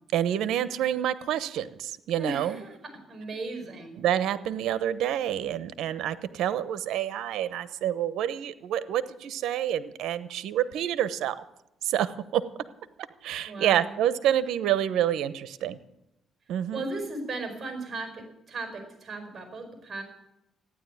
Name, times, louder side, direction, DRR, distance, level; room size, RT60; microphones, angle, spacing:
voice 1, 0.1-2.6 4.0-11.4 11.8-12.4 13.2-15.8 16.5-16.9, right 11 dB, 85° right, 15 dB, 0.9 m, -28 dB
voice 2, 2.2-2.8 3.1-4.0 13.4-14.0 16.7-20.0, right 2 dB, 35° right, 5 dB, 5.0 m, -36 dB
15.0 x 10.0 x 9.1 m, 0.86 s
cardioid pair, 90°, 0 cm